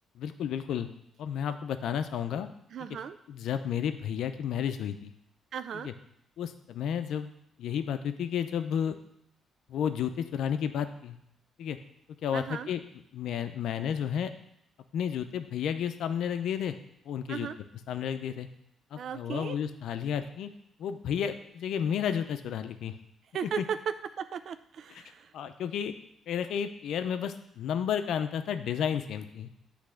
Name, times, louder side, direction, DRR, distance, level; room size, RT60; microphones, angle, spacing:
voice 1, 0.2-0.9 1.2-2.5 3.3-5.1 5.7-5.9 6.4-7.3 7.6-9.0 9.7-11.2 11.6-11.8 12.2-12.8 13.1-14.3 14.9-16.7 17.1-17.5 17.9-18.5 18.9-20.5 20.8-22.9 23.6-23.7 24.9-25.0 25.3-25.9 26.3-29.5, left 8 dB, 75° left, 9 dB, 0.6 m, -32 dB
voice 2, 2.7-3.2 5.5-5.9 12.3-12.7 17.3-17.6 19.0-19.6 23.3-23.8 24.2-25.3, right 7 dB, 60° right, 11 dB, 0.3 m, -36 dB
8.3 x 3.3 x 6.3 m, 0.75 s
cardioid pair, 90°, 0 cm